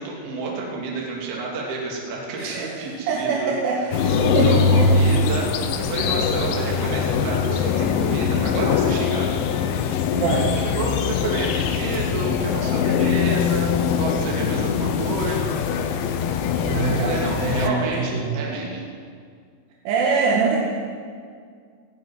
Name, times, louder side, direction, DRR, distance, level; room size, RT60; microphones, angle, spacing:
voice 1, 0.0-3.5 4.1-9.4 9.8-9.9 10.2-15.6 16.9-18.8, right 2 dB, 55° right, -2 dB, 4.5 m, -30 dB
voice 2, 2.4-2.8 3.1-4.9 10.1-10.5 16.6-18.4 19.9-20.6, right 4 dB, 90° right, -3 dB, 4.9 m, -24 dB
sound 1, 3.9-17.7, left 6 dB, 75° left, 3.4 m, -22 dB
18.5 x 15.0 x 9.6 m, 2.1 s
omnidirectional pair, 6.0 m